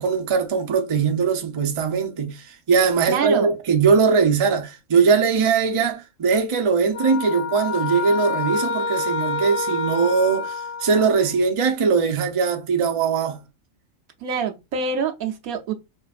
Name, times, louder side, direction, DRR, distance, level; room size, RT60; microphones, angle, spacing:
voice 1, 0.0-13.4, right 5 dB, 40° right, 0.4 m, -20 dB
voice 2, 3.1-3.5 14.2-15.7, right 6 dB, 90° right, 1.2 m, -25 dB
sound 1, 6.9-11.4, left 5 dB, 50° left, 0.9 m, -28 dB
5.4 x 2.6 x 2.4 m
omnidirectional pair, 1.4 m